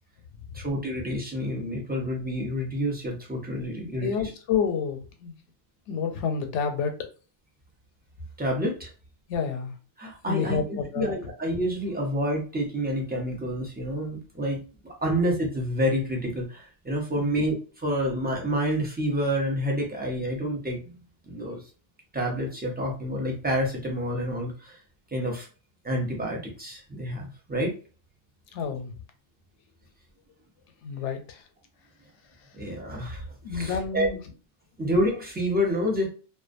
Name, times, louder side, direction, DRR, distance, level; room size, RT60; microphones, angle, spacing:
voice 1, 0.5-4.3 8.4-8.9 10.0-20.8 21.2-21.6 22.1-24.8 25.1-25.5 25.8-27.8 32.5-33.2 33.5-34.1 34.8-36.1, equal, 10° right, -1 dB, 0.5 m, -28 dB
voice 2, 3.8-5.4 5.9-6.9 9.3-9.7 10.2-11.1 17.1-17.4 28.5-28.9 30.8-31.4 33.4-34.2, left 6 dB, 80° left, 6 dB, 0.9 m, -29 dB
2.4 x 2.2 x 2.5 m, 0.36 s
omnidirectional pair, 1.2 m